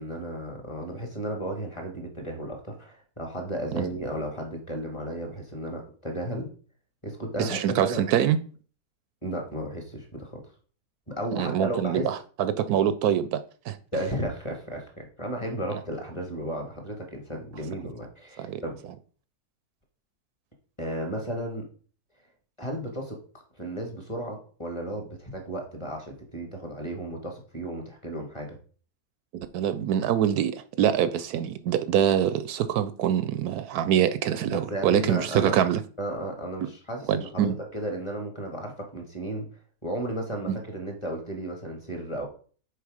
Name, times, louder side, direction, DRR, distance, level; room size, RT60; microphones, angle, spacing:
voice 1, 0.0-6.5 7.0-8.0 9.2-10.4 11.1-12.1 13.9-18.8 20.8-21.6 22.6-23.2 23.5-28.6 34.5-35.5 36.0-39.5 39.8-42.3, right 1 dB, 20° left, 1.7 m, -34 dB
voice 2, 7.4-8.4 11.4-13.4 13.7-13.8 18.4-18.6 29.3-35.8 37.1-37.6, right 10 dB, 75° right, 1.0 m, -24 dB
6.7 x 4.6 x 4.9 m
omnidirectional pair, 1.7 m